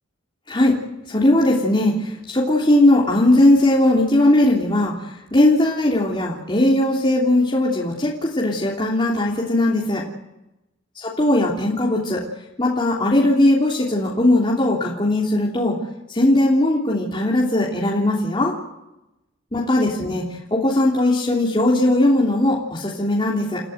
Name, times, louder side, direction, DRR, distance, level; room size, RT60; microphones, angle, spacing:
voice 1, 1.1-4.9 5.3-10.0 11.0-12.2 12.6-15.7 16.1-18.5 19.5-20.2 20.5-23.6, left 1 dB, 25° left, -4 dB, 3.2 m, -18 dB
29.5 x 14.5 x 8.0 m, 0.92 s
head